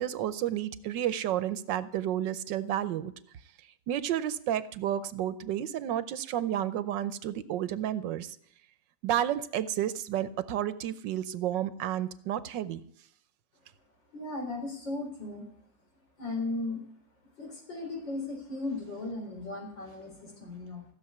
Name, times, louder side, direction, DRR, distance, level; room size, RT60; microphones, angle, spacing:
voice 1, 0.0-3.1 3.9-8.4 9.0-12.8, right 11 dB, 85° right, 15 dB, 1.4 m, -31 dB
voice 2, 14.1-15.4 16.2-16.8 17.4-20.9, left 2 dB, 90° left, 1 dB, 4.8 m, -36 dB
15.5 x 7.0 x 9.4 m, 0.65 s
omnidirectional pair, 1.9 m